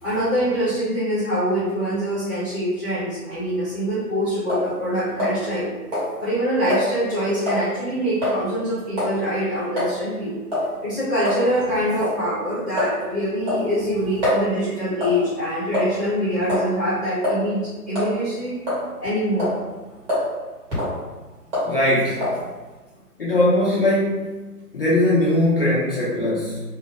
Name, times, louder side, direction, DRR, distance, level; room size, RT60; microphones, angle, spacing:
voice 1, 0.0-5.7 6.2-10.3 10.8-18.5 19.0-19.6, equal, ahead, -15 dB, 0.7 m, -24 dB
sound 1, 4.5-4.7 5.2-5.6 5.9-6.1 6.7-6.9 7.5-7.7 8.2-8.4 9.0-9.2 9.8-9.9 10.5-10.7 11.2-11.4 12.0-12.2 12.8-13.0 13.5-14.4 15.0-15.2 15.7-16.1 16.5-16.7 17.2-17.4 17.9-18.1 18.7-19.1 19.4-19.6 20.1-20.3 20.7-21.0 21.5-21.7 22.2-22.4, left 1 dB, 20° right, 1.2 m, -24 dB
voice 2, 21.6-22.4 23.2-24.3 24.7-26.6, left 1 dB, 40° left, -8 dB, 0.5 m, -20 dB
2.7 x 2.1 x 3.1 m, 1.2 s
figure-of-eight pair, 135°, 47 cm